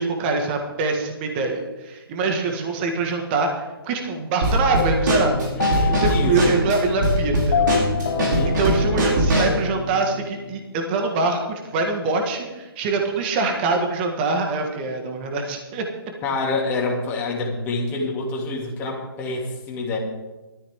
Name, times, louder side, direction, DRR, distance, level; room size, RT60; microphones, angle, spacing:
voice 1, 0.0-5.4 5.7-7.7 8.4-15.9, right 3 dB, 25° right, 3 dB, 1.8 m, -24 dB
Drum kit / Snare drum, 4.4-9.6, right 1 dB, 55° right, 5.2 m, -22 dB
sound 1, 4.8-10.9, left 7 dB, 40° left, 1.7 m, -27 dB
voice 2, 5.5-6.6 8.2-8.6 16.2-20.0, left 2 dB, 15° left, -2 dB, 2.7 m, -27 dB
18.5 x 13.5 x 3.7 m, 1.1 s
hypercardioid pair, 155°, 13 cm